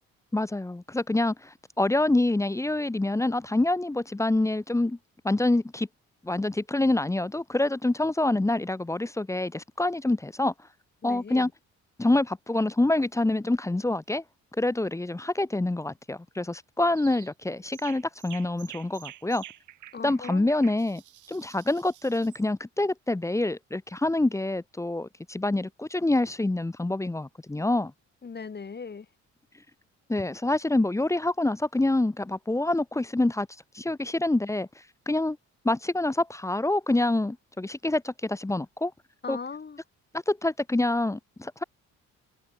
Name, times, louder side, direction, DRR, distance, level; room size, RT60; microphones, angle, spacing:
voice 1, 0.3-5.0 5.2-5.9 6.2-10.5 11.0-11.5 12.0-14.2 14.6-19.4 20.0-21.0 21.3-27.9 30.1-33.5 33.7-34.7 35.1-35.4 35.6-38.9 39.3-39.4 40.3-41.6, left 2 dB, 10° left, 0.7 m, -26 dB
voice 2, 11.0-11.5 19.9-20.5 28.2-29.1 39.2-39.8, left 5 dB, 35° left, 3.1 m, -38 dB
sound 1, 16.9-17.3 17.7-22.4, right 14 dB, 85° right, 3.5 m, -48 dB
cardioid pair, 90°, 30 cm